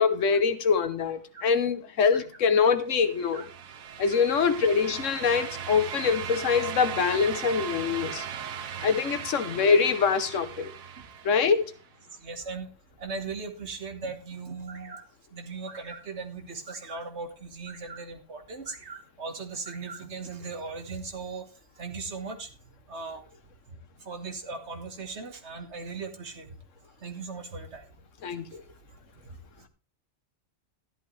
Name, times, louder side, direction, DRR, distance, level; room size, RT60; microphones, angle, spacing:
voice 1, 0.0-3.4 4.0-8.3 8.8-10.7 11.2-11.7 28.2-28.6, left 5 dB, 70° left, 1.2 m, -24 dB
sound 1, 2.9-11.8, right 8 dB, 85° right, 1.3 m, -38 dB
voice 2, 4.1-4.4 5.3-5.4 12.2-12.7 13.0-15.0 15.3-21.4 21.8-22.5 22.9-23.2 24.1-26.6 27.0-27.9, right 4 dB, 55° right, 1.7 m, -38 dB
13.0 x 11.0 x 3.2 m
omnidirectional pair, 1.4 m